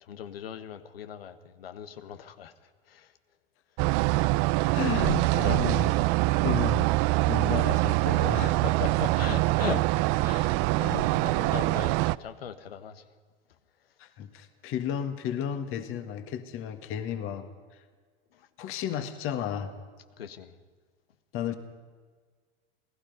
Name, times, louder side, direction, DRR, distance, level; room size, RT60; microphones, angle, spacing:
voice 1, 0.0-2.5 2.9-3.1 8.3-9.8 10.2-13.0 18.3-18.5 20.2-20.5, left 9 dB, 90° left, 1.6 m, -39 dB
sound 1, 3.8-12.1, right 21 dB, 55° right, 0.6 m, -24 dB
voice 2, 4.7-5.9 6.3-7.0 7.3-8.5 9.6-9.8 10.8-11.3 14.0-17.5 18.6-19.7 21.3-21.5, left 9 dB, 45° left, 1.8 m, -33 dB
28.0 x 18.0 x 5.4 m
hypercardioid pair, 105°, 29 cm